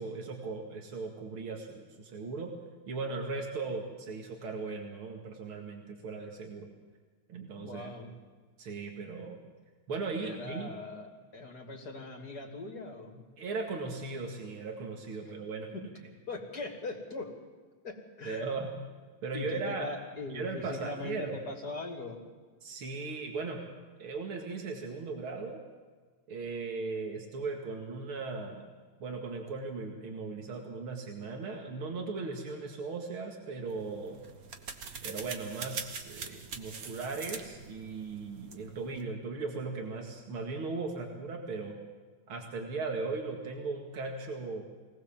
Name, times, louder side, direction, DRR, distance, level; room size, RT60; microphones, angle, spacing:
voice 1, 0.0-2.5 2.9-6.7 7.3-7.9 8.6-9.4 9.9-10.7 13.4-15.7 18.3-18.7 19.2-19.9 20.3-21.4 22.6-23.6 24.0-25.6 26.3-28.7 29.0-34.2 35.0-41.8 42.3-44.6, right 4 dB, 90° right, 2 dB, 3.0 m, -37 dB
voice 2, 7.6-8.1 10.1-13.2 15.2-15.3 15.7-15.8 16.3-17.4 17.8-18.5 19.3-22.2, left 3 dB, 50° left, 3 dB, 3.1 m, -41 dB
sound 1, 33.7-39.1, right 5 dB, 45° right, 1.7 m, -43 dB
23.5 x 18.5 x 7.4 m, 1.5 s
omnidirectional pair, 2.3 m